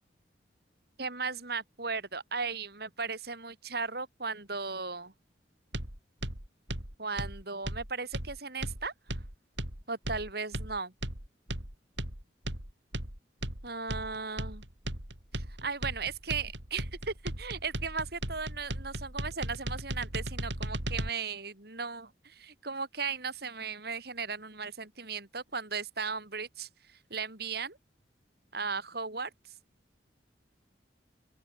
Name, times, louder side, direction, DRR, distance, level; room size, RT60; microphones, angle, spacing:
voice 1, 1.0-5.1 7.0-8.9 9.9-10.9 13.6-14.6 15.3-27.8 28.5-29.3, right 5 dB, 60° right, 4.7 m, -36 dB
sound 1, 5.7-21.1, right 1 dB, 85° right, 5.4 m, -37 dB
open air
head